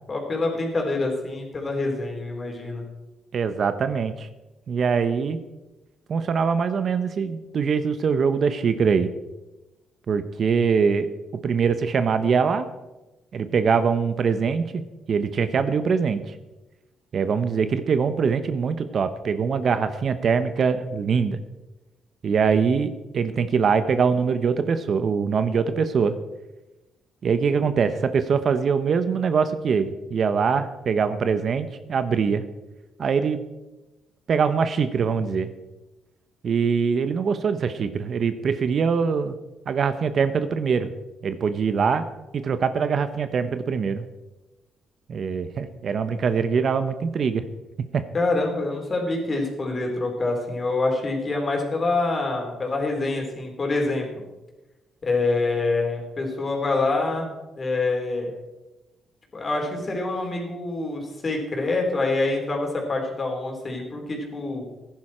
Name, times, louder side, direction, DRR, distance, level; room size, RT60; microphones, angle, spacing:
voice 1, 0.1-2.9 48.1-54.2 55.0-57.3 57.6-58.3 59.3-64.7, left 2 dB, 35° left, 1 dB, 3.8 m, -26 dB
voice 2, 3.3-4.3 4.7-5.4 6.1-9.1 10.1-12.7 13.3-14.8 15.1-16.3 17.1-21.4 22.2-26.2 27.2-32.4 33.0-33.4 34.3-35.5 36.4-39.3 39.7-40.9 41.2-42.0 42.3-44.0 45.1-47.4 47.9-48.0, right 6 dB, 55° right, 11 dB, 0.8 m, -23 dB
15.0 x 10.5 x 4.4 m, 1.1 s
cardioid pair, 90°, 0 cm